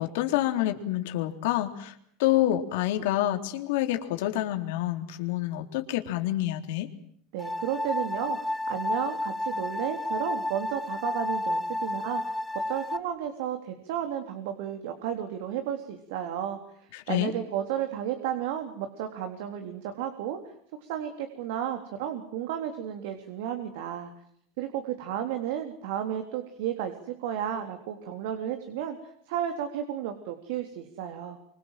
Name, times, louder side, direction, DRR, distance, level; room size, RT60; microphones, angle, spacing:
voice 1, 0.0-1.9 2.2-6.9 16.9-17.3, left 14 dB, 75° left, 5 dB, 3.7 m, -27 dB
voice 2, 7.3-12.3 12.7-20.4 20.8-24.1 24.6-31.4, right 10 dB, 70° right, 6 dB, 3.7 m, -33 dB
sound 1, 7.4-13.0, left 1 dB, 5° left, 1.0 m, -31 dB
25.0 x 25.0 x 7.7 m, 0.67 s
supercardioid pair, 135°, 0 cm